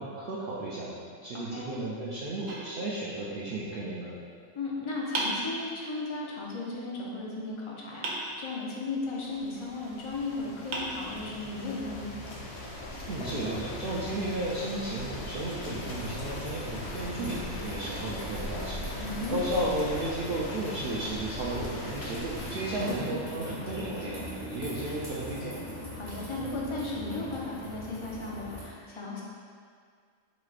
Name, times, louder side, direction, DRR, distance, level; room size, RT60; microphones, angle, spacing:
voice 1, 0.0-4.2 13.1-25.6, right 1 dB, 65° right, -6 dB, 0.5 m, -34 dB
voice 2, 1.3-1.8 4.5-12.2 19.0-19.4 22.7-23.1 25.9-29.2, left 2 dB, 40° left, -4 dB, 0.4 m, -36 dB
sound 1, 2.5-3.5 5.1-6.1 8.0-9.0 10.1-10.2 10.7-11.7, right 1 dB, 85° right, 1.1 m, -36 dB
sound 2, 8.9-22.9, left 1 dB, 60° left, 0.9 m, -40 dB
sound 3, 15.7-28.6, left 1 dB, 20° left, 1.2 m, -41 dB
4.7 x 4.0 x 2.4 m, 2.1 s
omnidirectional pair, 1.3 m